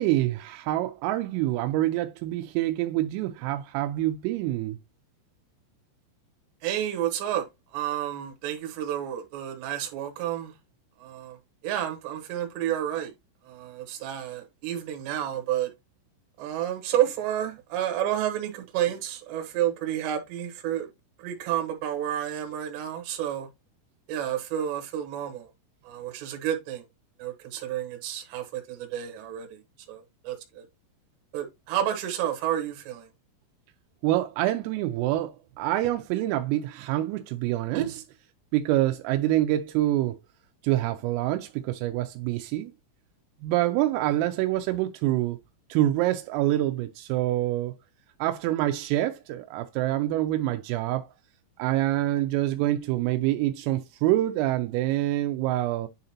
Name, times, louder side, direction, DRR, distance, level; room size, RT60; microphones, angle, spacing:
voice 1, 0.0-4.8 34.0-37.9 38.5-40.2 40.6-42.7 43.4-45.4 45.7-47.7 48.2-51.1 51.6-55.9, right 15 dB, 85° right, 3.2 m, -26 dB
voice 2, 6.6-7.5 7.7-10.5 11.0-11.4 11.6-13.1 13.5-15.7 16.4-20.9 21.2-23.5 24.1-25.5 25.8-26.8 27.2-29.6 29.9-30.6 31.3-33.1 37.7-37.9, right 11 dB, 70° right, 3.2 m, -30 dB
10.0 x 3.9 x 2.8 m
omnidirectional pair, 5.8 m